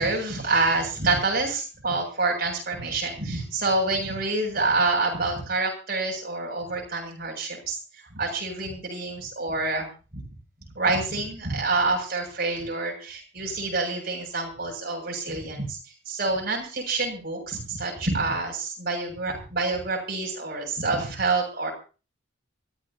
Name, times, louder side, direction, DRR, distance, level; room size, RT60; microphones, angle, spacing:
voice 1, 0.0-9.9 10.1-10.2 10.8-15.8 16.1-21.7, right 3 dB, 50° right, 0 dB, 7.8 m, -27 dB
24.5 x 15.0 x 3.0 m, 0.36 s
head